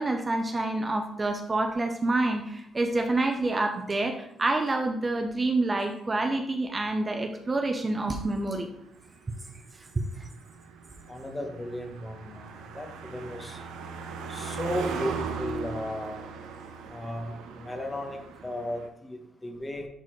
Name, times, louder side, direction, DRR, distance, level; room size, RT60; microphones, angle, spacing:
voice 1, 0.0-8.7 10.0-10.1, right 2 dB, 25° right, 5 dB, 0.8 m, -27 dB
Car passing by, 7.7-18.9, right 5 dB, 90° right, 0.7 m, -39 dB
voice 2, 11.1-13.6 14.3-16.3 16.9-19.9, left 1 dB, 15° left, 4 dB, 1.2 m, -35 dB
11.0 x 4.0 x 3.3 m, 0.74 s
cardioid pair, 90°, 0 cm